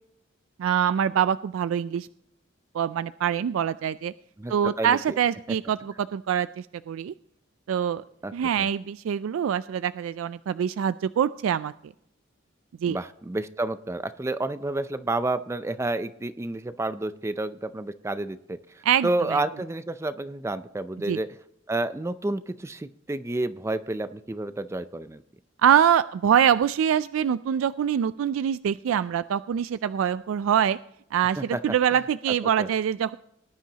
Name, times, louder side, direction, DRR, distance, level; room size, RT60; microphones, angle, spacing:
voice 1, 0.6-2.1 2.7-4.1 4.5-7.1 7.7-8.0 8.3-11.7 12.8-13.0 18.9-19.4 21.1-21.2 25.6-30.8 31.1-33.2, right 9 dB, 90° right, 15 dB, 0.3 m, -24 dB
voice 2, 4.4-5.0 8.2-8.7 12.9-21.3 21.7-25.2 31.5-31.6 31.9-32.0 32.6-32.7, right 2 dB, 15° right, 12 dB, 0.4 m, -30 dB
19.0 x 10.0 x 2.8 m, 0.76 s
head